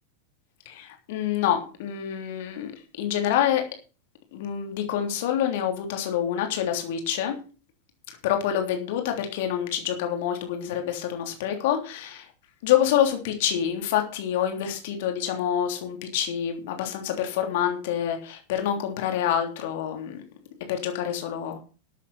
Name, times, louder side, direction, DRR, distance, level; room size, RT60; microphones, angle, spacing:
voice 1, 0.6-2.7 3.0-3.6 4.3-7.4 8.2-12.2 12.6-20.2 20.7-21.6, left 10 dB, 50° left, 4 dB, 3.2 m, -27 dB
13.0 x 8.3 x 5.7 m, 0.36 s
figure-of-eight pair, 90°, 0 cm